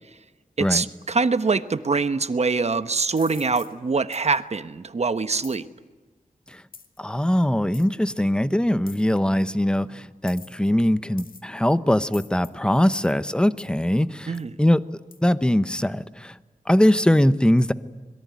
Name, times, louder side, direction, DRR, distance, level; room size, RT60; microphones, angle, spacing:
voice 1, 0.6-5.6 14.3-14.5, right 4 dB, 50° right, 12 dB, 1.1 m, -24 dB
sound 1, 3.2-3.7 4.1-4.4 5.4-5.6 6.7-7.0 7.7-7.9 8.9-9.2 10.3-10.7 11.2-11.6 12.1-12.5 12.9-13.1 13.6-13.7 14.3-14.5 15.1-15.2, left 5 dB, 85° left, 2.3 m, -45 dB
voice 2, 7.0-14.8 15.2-16.4 16.7-17.7, left 1 dB, 5° left, 14 dB, 0.9 m, -21 dB
26.0 x 22.0 x 9.5 m, 1.3 s
wide cardioid pair, 110°, 14 cm